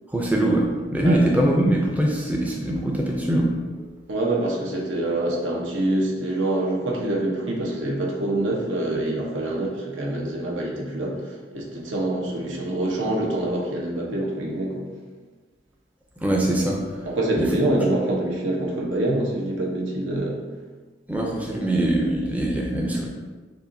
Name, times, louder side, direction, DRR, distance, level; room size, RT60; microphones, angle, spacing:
voice 1, 0.1-4.0 16.2-17.1 17.4-17.7 21.1-23.1, right 1 dB, 10° right, -1 dB, 0.4 m, -23 dB
voice 2, 4.1-14.9 17.1-20.4, right 1 dB, 85° right, -2 dB, 1.0 m, -25 dB
6.6 x 2.5 x 2.7 m, 1.3 s
head